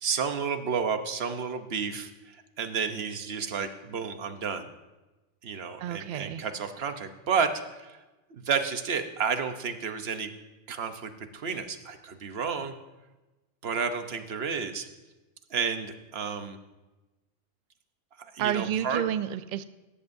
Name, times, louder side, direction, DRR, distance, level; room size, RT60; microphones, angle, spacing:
voice 1, 0.0-4.7 5.4-8.0 8.3-10.3 10.7-12.7 13.6-14.9 15.5-16.6 18.3-19.0, right 6 dB, 55° right, 8 dB, 1.1 m, -31 dB
voice 2, 5.8-6.4 18.4-19.6, right 10 dB, 85° right, 13 dB, 0.4 m, -30 dB
18.0 x 13.5 x 2.6 m, 1.1 s
omnidirectional pair, 1.3 m